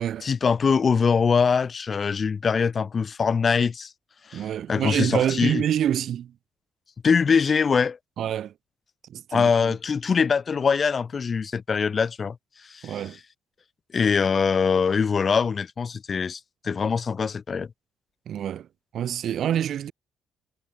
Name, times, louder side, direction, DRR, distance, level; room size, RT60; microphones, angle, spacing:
voice 1, 0.2-3.9 4.3-5.6 7.0-8.0 9.3-12.4 12.7-13.0 13.9-17.7, left 5 dB, 40° left, 5.4 m, -23 dB
voice 2, 4.3-6.3 8.2-8.5 9.1-9.7 12.8-13.2 18.3-18.7 18.9-19.9, right 10 dB, 65° right, 6.4 m, -27 dB
cardioid pair, 90°, 0 cm